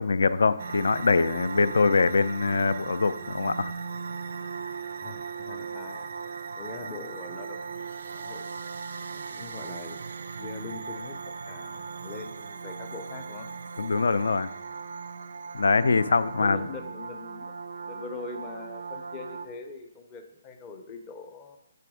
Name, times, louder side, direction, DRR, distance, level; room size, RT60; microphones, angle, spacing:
voice 1, 0.0-3.7 13.8-14.5 15.5-16.6, left 4 dB, 75° left, 14 dB, 0.3 m, -23 dB
sound 1, 0.6-19.5, right 5 dB, 55° right, 0.3 m, -38 dB
voice 2, 4.9-6.1 6.6-7.6 8.1-8.5 9.1-10.0 10.4-11.2 11.5-13.5 15.9-17.6 17.8-21.6, left 4 dB, 15° left, 5 dB, 0.5 m, -42 dB
6.9 x 3.3 x 4.8 m, 0.90 s
hypercardioid pair, 170°, 0 cm